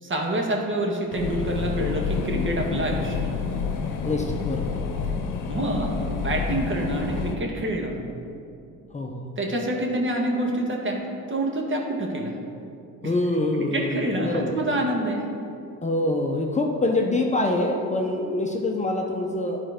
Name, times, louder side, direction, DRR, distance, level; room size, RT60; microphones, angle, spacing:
voice 1, 0.0-3.2 5.5-8.0 9.4-11.0 11.3-12.3 13.0-13.1 13.6-15.2, right 1 dB, 35° right, 0 dB, 1.6 m, -27 dB
sound 1, 1.1-7.3, left 5 dB, 70° left, 0.9 m, -28 dB
voice 2, 4.0-4.8 8.9-9.3 13.0-14.6 15.8-19.6, left 2 dB, 20° left, 1 dB, 0.8 m, -25 dB
11.0 x 4.4 x 5.1 m, 2.6 s
supercardioid pair, 85°, 33 cm